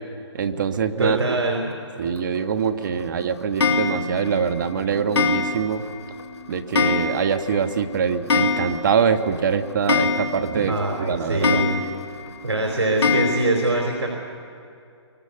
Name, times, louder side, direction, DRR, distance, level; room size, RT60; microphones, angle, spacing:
voice 1, 0.3-1.4 2.0-5.8 6.5-11.6, right 6 dB, 45° right, 9 dB, 1.3 m, -24 dB
voice 2, 1.0-1.7 10.6-11.8 12.4-14.1, right 2 dB, 85° right, 0 dB, 4.3 m, -23 dB
Clock, 3.6-4.3 5.2-5.9 6.2-6.3 6.7-7.5 7.8-7.9 8.1-9.1 9.4-9.5 9.9-10.7 11.4-12.2 13.0-13.5, left 4 dB, 70° left, 2.5 m, -23 dB
26.0 x 24.5 x 6.8 m, 2.4 s
hypercardioid pair, 150°, 14 cm